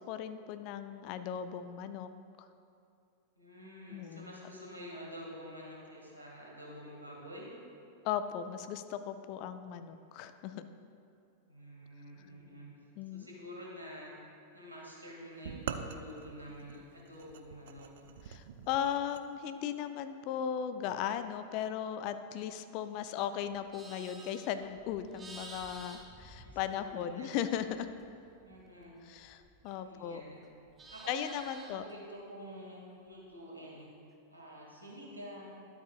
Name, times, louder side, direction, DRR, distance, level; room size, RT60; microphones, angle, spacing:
voice 1, 0.0-2.1 2.4-2.5 3.9-4.3 8.0-10.7 13.0-13.3 18.3-27.9 29.1-30.2 31.1-31.8, left 9 dB, 45° left, 10 dB, 0.4 m, -37 dB
voice 2, 3.4-7.5 10.0-10.1 11.5-12.7 13.1-14.1 14.5-17.9 26.4-27.5 28.4-29.0 29.8-30.4 30.9-33.9 34.3-35.5, equal, 80° right, -4 dB, 2.1 m, -48 dB
sound 1, 15.4-19.3, right 7 dB, 55° right, 0.4 m, -44 dB
Livestock farm animals working animals, 23.5-27.2 27.5-30.0 30.3-31.9, right 3 dB, 15° right, 0.9 m, -52 dB
12.0 x 8.4 x 2.4 m, 2.5 s
figure-of-eight pair, 90°, 0 cm